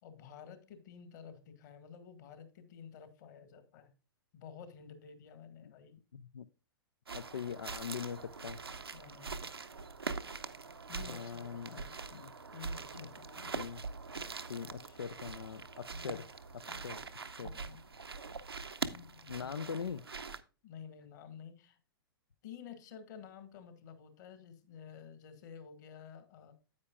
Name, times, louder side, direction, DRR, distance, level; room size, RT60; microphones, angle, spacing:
voice 1, 0.0-3.9 4.3-6.0 8.9-9.5 10.9-11.9 12.5-13.6 15.9-16.2 17.4-17.9 19.4-19.8 20.6-21.8 22.4-26.5, left 7 dB, 50° left, 10 dB, 1.8 m, -51 dB
voice 2, 6.1-6.4 7.1-8.6 11.0-11.8 12.1-12.3 12.9-13.1 13.5-13.8 14.5-16.2 16.5-17.0 17.3-17.5 18.9-20.4, left 7 dB, 75° left, 13 dB, 0.5 m, -42 dB
sound 1, 7.1-20.4, right 4 dB, 80° right, 0.8 m, -43 dB
9.6 x 8.8 x 2.3 m, 0.35 s
figure-of-eight pair, 105°, 13 cm